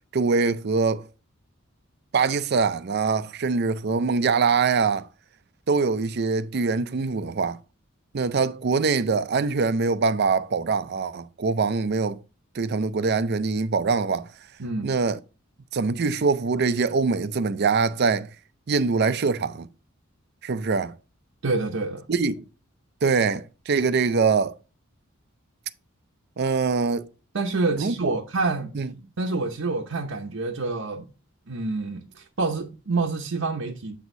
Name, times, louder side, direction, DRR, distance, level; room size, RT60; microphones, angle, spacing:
voice 1, 0.1-1.1 2.1-5.1 5.7-7.6 8.1-12.2 12.5-14.3 14.8-15.2 15.7-18.3 18.7-19.7 20.4-20.9 22.1-22.4 23.0-24.6 26.4-27.1 27.8-28.1 28.8-28.9, right 4 dB, 50° right, 0.5 m, -23 dB
voice 2, 14.6-15.0 21.4-22.0 27.3-28.7 29.2-31.1 31.5-33.9, right 3 dB, 70° right, 0.8 m, -27 dB
8.2 x 6.2 x 2.6 m
head